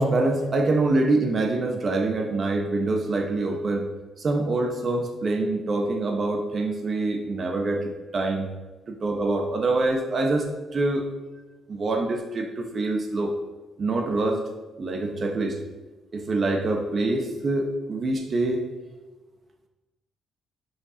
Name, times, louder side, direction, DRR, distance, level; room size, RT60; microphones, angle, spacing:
voice 1, 0.0-3.9 4.2-8.5 8.9-11.1 11.7-13.4 13.8-14.5 14.8-15.6 16.1-18.7, right 2 dB, 45° right, 3 dB, 1.2 m, -25 dB
11.0 x 6.3 x 2.9 m, 1.2 s
cardioid pair, 90°, 0 cm